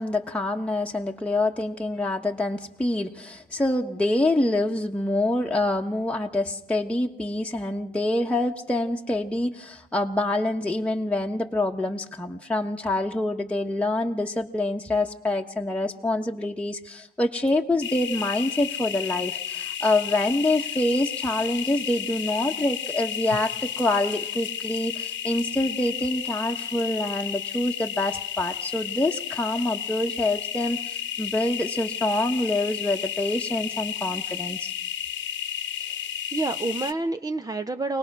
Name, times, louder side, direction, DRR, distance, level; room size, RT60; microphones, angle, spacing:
voice 1, 0.0-34.7, left 2 dB, 5° left, 1 dB, 1.2 m, -26 dB
sound 1, 17.8-36.9, left 10 dB, 70° left, 1.2 m, -32 dB
voice 2, 35.8-38.0, right 3 dB, 20° right, 8 dB, 0.7 m, -29 dB
24.5 x 18.5 x 6.1 m, 0.81 s
cardioid pair, 90°, 20 cm